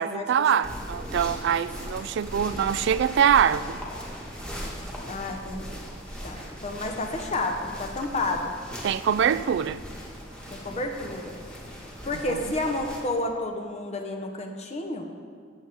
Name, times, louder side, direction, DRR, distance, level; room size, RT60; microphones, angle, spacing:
voice 1, 0.0-3.8 8.8-9.8 12.3-12.4, right 8 dB, 60° right, 0.3 m, -24 dB
sound 1, 0.6-13.0, equal, 5° left, 1.6 m, -39 dB
voice 2, 5.0-5.8 6.2-8.5 10.5-11.3 12.0-15.1, left 2 dB, 35° left, 1.0 m, -30 dB
15.5 x 7.5 x 3.6 m
head